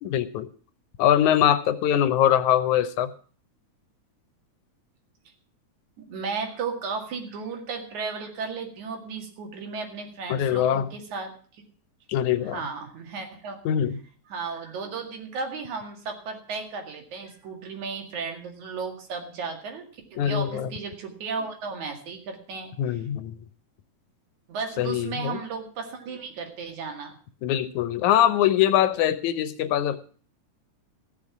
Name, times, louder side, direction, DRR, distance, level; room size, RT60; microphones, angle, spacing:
voice 1, 0.0-0.5 1.0-3.1 10.3-10.9 12.1-12.6 13.7-14.0 20.2-20.7 22.8-23.4 24.8-25.4 27.4-30.0, left 10 dB, 90° left, 12 dB, 2.3 m, -22 dB
voice 2, 6.1-11.7 12.5-13.6 14.3-23.0 24.5-27.2, right 5 dB, 80° right, 4 dB, 3.5 m, -34 dB
15.5 x 6.9 x 7.2 m, 0.43 s
omnidirectional pair, 3.3 m